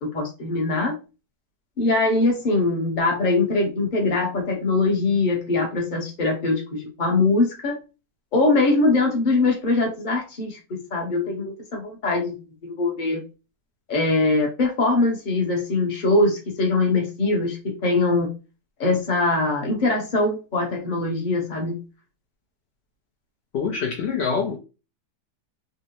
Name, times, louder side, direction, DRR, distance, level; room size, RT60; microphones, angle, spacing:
voice 1, 0.0-1.0 1.8-7.8 8.3-12.4 12.6-13.2 13.9-18.3 18.8-21.8, left 2 dB, 40° left, 0.8 m, -22 dB
voice 2, 23.5-24.6, left 5 dB, 75° left, 0.6 m, -25 dB
3.6 x 2.0 x 2.8 m
omnidirectional pair, 1.8 m